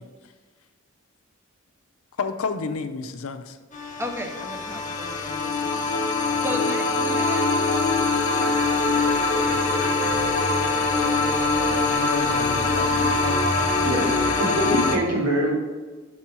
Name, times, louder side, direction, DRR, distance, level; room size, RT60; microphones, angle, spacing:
voice 1, 2.2-3.6 12.0-13.5, left 4 dB, 70° left, 9 dB, 0.5 m, -31 dB
sound 1, 3.7-15.0, left 3 dB, 35° left, 0.8 m, -23 dB
voice 2, 4.0-5.8 6.4-7.5 8.4-10.6, equal, 10° right, 3 dB, 0.7 m, -36 dB
voice 3, 14.4-15.5, equal, 80° right, -4 dB, 2.3 m, -24 dB
6.1 x 4.4 x 6.0 m, 1.3 s
head